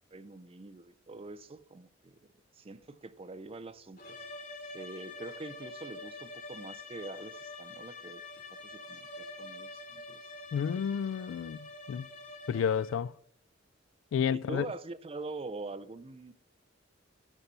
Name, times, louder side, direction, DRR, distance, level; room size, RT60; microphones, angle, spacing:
voice 1, 0.1-2.2 2.6-4.0 4.7-8.2 8.5-10.2 14.3-16.3, right 3 dB, 30° right, 0.5 m, -44 dB
sound 1, 4.0-13.2, left 2 dB, 45° left, 2.7 m, -46 dB
voice 2, 10.5-11.6 11.9-12.1 12.5-13.1 14.1-14.7, left 7 dB, 80° left, 0.3 m, -30 dB
12.5 x 4.2 x 6.8 m
head